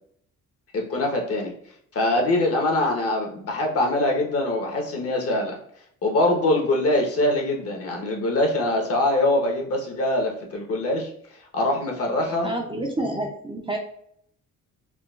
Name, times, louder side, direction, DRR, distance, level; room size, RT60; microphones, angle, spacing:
voice 1, 0.7-1.5 1.9-5.6 6.0-11.1 11.5-12.5, left 1 dB, 50° left, 1 dB, 1.0 m, -23 dB
voice 2, 12.4-13.8, right 1 dB, 15° right, 2 dB, 0.5 m, -28 dB
3.8 x 2.3 x 2.3 m, 0.65 s
cardioid pair, 90°, 30 cm